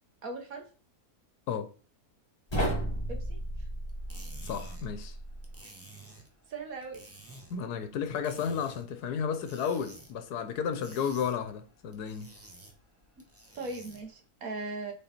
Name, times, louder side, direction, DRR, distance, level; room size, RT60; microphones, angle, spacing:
voice 1, 0.2-0.6 3.1-3.4 5.6-5.7 6.5-7.0 13.6-14.9, right 3 dB, 60° right, 1.8 m, -38 dB
sound 1, 2.5-5.6, right 1 dB, 15° left, 2.1 m, -34 dB
sound 2, 3.9-14.2, right 2 dB, 10° right, 1.2 m, -53 dB
voice 2, 4.4-5.2 7.5-12.3, left 7 dB, 80° left, 1.4 m, -33 dB
6.6 x 4.1 x 4.3 m
omnidirectional pair, 1.7 m